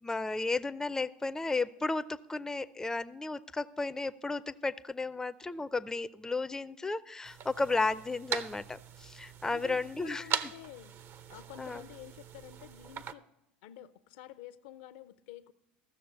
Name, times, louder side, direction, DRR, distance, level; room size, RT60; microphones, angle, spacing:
voice 1, 0.0-10.5 11.6-11.8, left 3 dB, 10° left, 0.4 m, -34 dB
sound 1, 7.2-13.1, right 8 dB, 45° right, 0.7 m, -41 dB
voice 2, 9.5-10.9 11.3-13.2 13.6-15.5, left 12 dB, 70° left, 0.6 m, -49 dB
14.0 x 6.6 x 6.5 m
hypercardioid pair, 75°, 5 cm